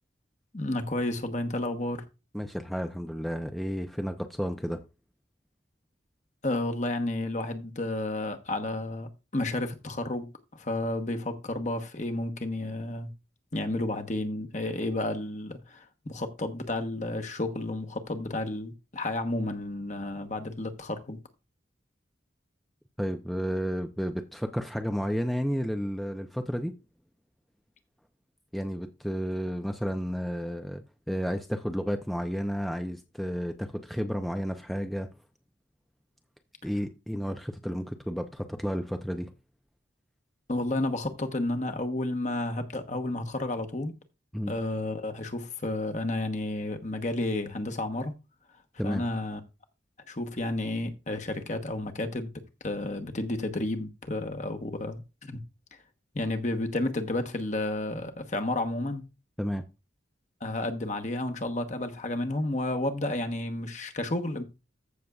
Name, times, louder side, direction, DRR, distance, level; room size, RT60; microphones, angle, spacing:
voice 1, 0.5-2.0 6.4-13.1 13.5-21.2 40.5-43.9 44.5-48.1 48.8-49.4 50.1-52.3 52.6-55.4 56.1-59.0 60.4-64.4, left 2 dB, 40° left, 1.0 m, -31 dB
voice 2, 2.3-4.8 23.0-26.7 28.5-35.1 36.6-39.3 44.3-44.5 48.8-49.0 59.4-59.6, equal, ahead, 0.5 m, -32 dB
14.5 x 6.5 x 2.4 m
head